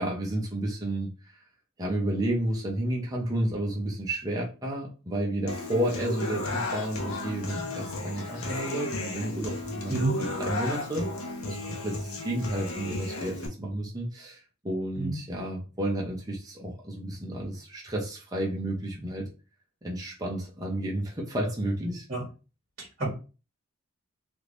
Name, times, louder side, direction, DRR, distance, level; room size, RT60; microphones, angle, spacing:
voice 1, 0.0-1.4 1.8-11.1 11.4-19.3 19.8-22.1, right 1 dB, 20° right, -2 dB, 0.7 m, -31 dB
Human voice / Acoustic guitar, 5.5-13.5, left 2 dB, 85° left, 0.8 m, -34 dB
voice 2, 9.9-10.1 14.9-15.1 22.1-22.2 22.8-23.1, right 3 dB, 40° right, -4 dB, 1.4 m, -29 dB
3.5 x 2.5 x 3.0 m, 0.33 s
head